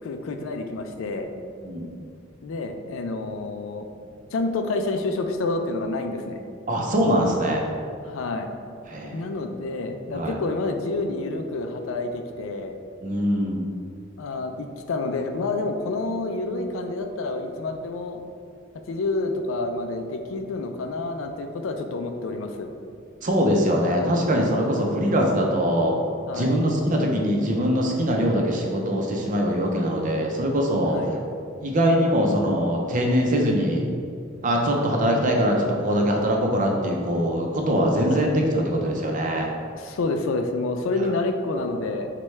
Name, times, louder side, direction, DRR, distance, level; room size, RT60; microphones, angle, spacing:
voice 1, 0.0-1.3 2.4-3.9 4.3-6.4 8.0-8.5 9.1-12.8 14.2-18.2 18.9-22.7 26.3-26.6 30.9-31.1 38.1-38.3 39.7-42.1, left 3 dB, 70° left, 6 dB, 0.4 m, -28 dB
voice 2, 6.7-7.6 8.9-9.2 10.1-10.4 13.0-13.6 23.2-25.9 26.3-31.0 31.6-33.8 34.4-39.5, equal, 40° right, 0 dB, 0.5 m, -22 dB
6.1 x 2.2 x 3.2 m, 2.3 s
head